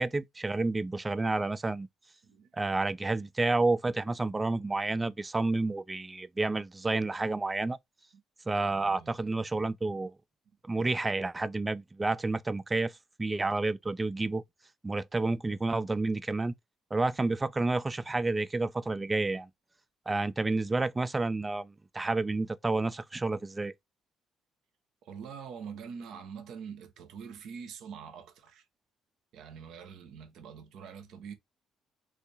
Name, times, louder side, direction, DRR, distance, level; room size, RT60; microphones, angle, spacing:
voice 1, 0.0-1.9 2.5-7.8 8.5-10.1 10.6-12.9 13.2-14.4 14.8-16.5 16.9-19.5 20.1-23.7, right 3 dB, 25° right, 0.3 m, -30 dB
voice 2, 8.5-9.2 25.0-28.7 29.3-31.3, right 6 dB, 65° right, 0.6 m, -45 dB
3.4 x 2.3 x 2.7 m
hypercardioid pair, 45°, 0 cm